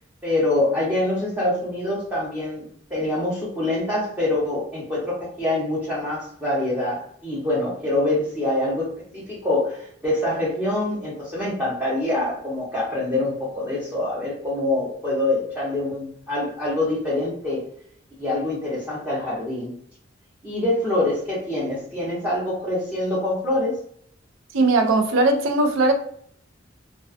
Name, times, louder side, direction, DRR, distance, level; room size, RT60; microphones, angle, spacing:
voice 1, 0.2-17.7 18.2-19.7 20.4-23.8, left 1 dB, 10° right, 0.6 m, -25 dB
voice 2, 24.5-25.9, right 2 dB, 85° right, 0.4 m, -19 dB
2.3 x 2.2 x 2.4 m
head